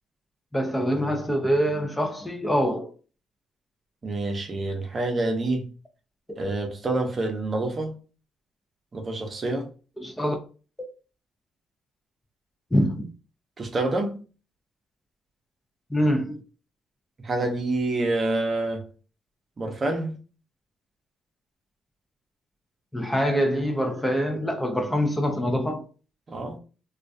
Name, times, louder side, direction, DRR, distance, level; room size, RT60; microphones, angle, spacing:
voice 1, 0.5-2.9 10.0-10.4 12.7-13.1 15.9-16.4 22.9-25.8, equal, 10° left, 0.5 m, -24 dB
voice 2, 4.0-5.7 6.4-7.9 8.9-9.7 13.6-14.2 17.2-18.8 19.6-20.2 26.3-26.6, right 2 dB, 40° right, 0.7 m, -27 dB
2.3 x 2.2 x 2.6 m
cardioid pair, 90°, 0 cm